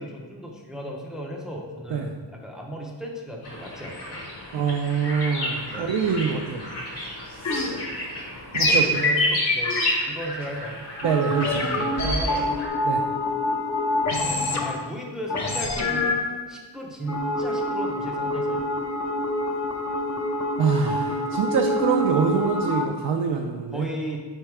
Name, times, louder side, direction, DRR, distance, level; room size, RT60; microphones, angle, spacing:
voice 1, 0.0-4.2 5.7-5.9 8.7-9.8 10.1-10.8 11.8-12.5 14.1-16.2 16.5-18.6 23.7-24.2, right 1 dB, ahead, 0 dB, 0.5 m, -35 dB
sound 1, 3.4-12.7, left 1 dB, 55° left, 1.6 m, -29 dB
voice 2, 4.5-6.6 7.4-7.6 8.5-8.8 11.0-11.6 12.8-13.0 20.6-23.9, right 6 dB, 60° right, 2 dB, 0.5 m, -25 dB
sound 2, 7.4-7.8 8.5-8.9 9.6-10.0 11.0-14.8 15.3-16.4 17.1-22.9, left 1 dB, 40° left, 0.7 m, -26 dB
4.5 x 4.4 x 4.8 m, 1.5 s
wide cardioid pair, 145°, 45 cm